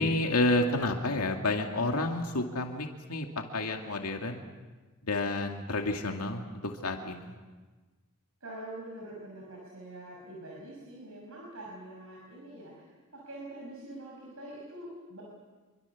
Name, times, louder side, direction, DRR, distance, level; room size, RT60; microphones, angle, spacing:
voice 1, 0.0-3.3 3.5-4.5 5.0-7.3, left 2 dB, 85° left, 3 dB, 2.2 m, -30 dB
voice 2, 8.4-15.2, right 1 dB, 70° right, -3 dB, 6.0 m, -45 dB
26.0 x 24.5 x 7.1 m, 1.3 s
head